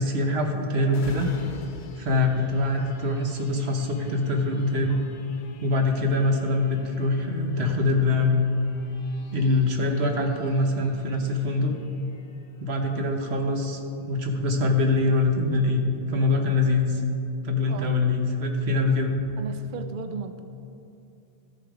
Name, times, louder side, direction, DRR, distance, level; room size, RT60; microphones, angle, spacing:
voice 1, 0.0-1.3 2.0-5.0 5.6-8.4 9.3-11.7 12.6-15.8 16.1-17.0 17.4-19.2, left 2 dB, 80° right, 3 dB, 1.3 m, -24 dB
sound 1, 0.9-14.2 14.7-14.8, left 3 dB, 90° left, 1.1 m, -47 dB
voice 2, 19.4-20.4, right 6 dB, 60° right, 8 dB, 0.6 m, -36 dB
13.5 x 6.6 x 5.0 m, 2.7 s
omnidirectional pair, 1.1 m